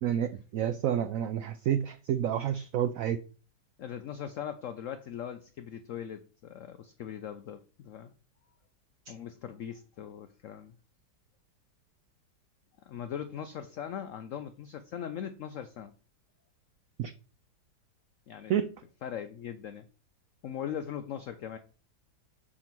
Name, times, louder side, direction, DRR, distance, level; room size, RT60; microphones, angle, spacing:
voice 1, 0.0-3.2 17.0-17.1 18.5-18.7, right 10 dB, 85° right, 10 dB, 0.7 m, -29 dB
voice 2, 3.8-8.1 9.1-10.8 12.8-15.9 18.3-18.5 19.0-19.9 20.4-21.6, left 9 dB, 80° left, 8 dB, 0.7 m, -40 dB
6.6 x 3.7 x 5.9 m, 0.38 s
omnidirectional pair, 2.0 m